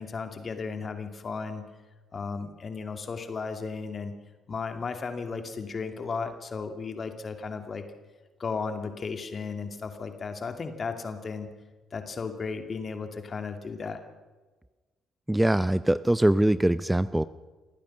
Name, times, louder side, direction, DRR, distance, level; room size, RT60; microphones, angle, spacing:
voice 1, 0.0-1.6 2.1-4.1 4.5-7.9 8.4-11.5 11.9-14.0, left 5 dB, 35° left, 7 dB, 2.5 m, -35 dB
voice 2, 15.3-17.2, right 1 dB, 10° right, 16 dB, 0.6 m, -22 dB
28.0 x 15.0 x 6.2 m, 1.3 s
figure-of-eight pair, 45°, 0 cm